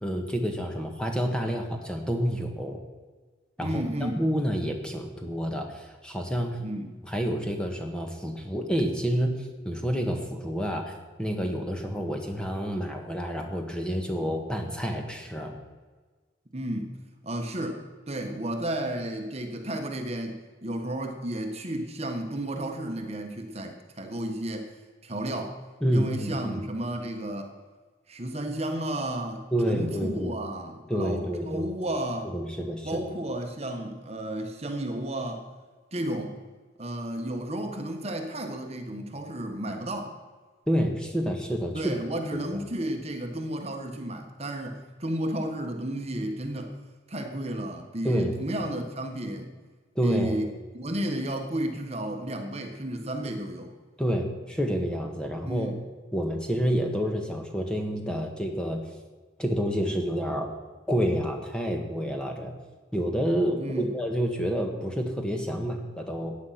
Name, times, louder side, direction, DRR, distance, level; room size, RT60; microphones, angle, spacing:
voice 1, 0.0-2.8 3.6-6.6 7.0-15.5 25.8-26.6 29.5-30.3 30.9-31.6 32.2-33.0 40.7-41.9 42.3-42.6 48.0-48.3 49.9-50.4 54.0-55.7 56.1-58.8 59.4-60.5 60.9-62.5 62.9-66.4, equal, 5° left, 3 dB, 1.6 m, -29 dB
voice 2, 3.6-4.2 6.6-6.9 16.5-16.9 17.2-24.7 25.0-25.6 25.9-27.5 28.1-32.3 32.8-35.4 35.9-36.4 36.8-40.1 41.7-46.8 47.1-49.5 50.0-50.5 50.7-53.7 55.4-55.8 63.6-63.9, right 1 dB, 35° right, 4 dB, 1.4 m, -32 dB
15.0 x 9.7 x 5.9 m, 1.3 s
head